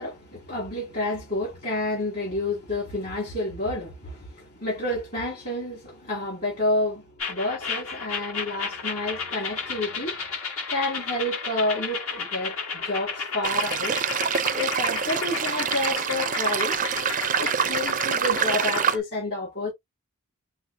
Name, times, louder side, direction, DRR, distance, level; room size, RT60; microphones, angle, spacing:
voice 1, 0.0-10.2 10.7-14.0 14.5-16.8 17.4-19.7, left 2 dB, 45° left, 2.5 m, -29 dB
sound 1, 7.2-19.0, left 4 dB, 70° left, 1.8 m, -32 dB
sound 2, 13.4-19.0, right 8 dB, 35° right, 0.4 m, -26 dB
5.8 x 2.1 x 2.8 m
head